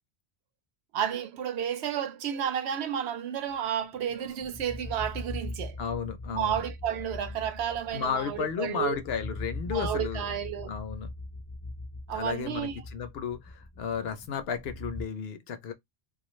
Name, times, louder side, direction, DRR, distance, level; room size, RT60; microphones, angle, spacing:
voice 1, 0.9-5.8 6.3-9.0 9.7-10.7 12.1-12.8, right 9 dB, 85° right, 0.8 m, -31 dB
sound 1, 4.0-15.0, left 2 dB, 20° left, 0.4 m, -40 dB
voice 2, 5.8-6.6 7.9-10.3 10.6-11.1 12.1-15.7, left 7 dB, 75° left, 0.8 m, -33 dB
2.3 x 2.2 x 3.0 m
omnidirectional pair, 1.1 m